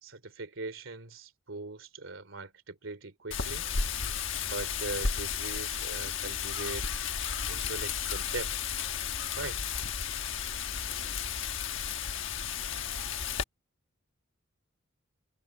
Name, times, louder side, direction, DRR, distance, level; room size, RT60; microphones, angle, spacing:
voice 1, 0.0-3.7 4.0-4.1 4.4-7.0 7.5-8.5 9.4-9.6, right 3 dB, 70° right, 2.9 m, -40 dB
Wind, 3.3-13.4, left 7 dB, 65° left, 1.3 m, -33 dB
head